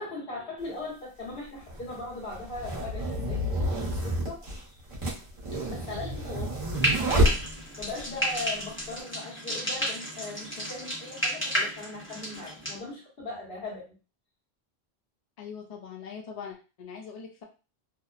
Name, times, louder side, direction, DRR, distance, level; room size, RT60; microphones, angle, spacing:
voice 1, 0.0-4.8 5.5-6.6 7.0-7.4 7.8-13.9, left 2 dB, 70° left, -4 dB, 1.3 m, -39 dB
sound 1, 0.6-0.7 1.6-8.0, equal, 30° right, 0.8 m, -29 dB
Frying (food), 6.7-12.8, equal, 15° left, 0.8 m, -32 dB
voice 2, 15.4-17.4, left 6 dB, 50° left, 1 dB, 0.5 m, -42 dB
2.9 x 2.0 x 2.4 m, 0.33 s
omnidirectional pair, 1.1 m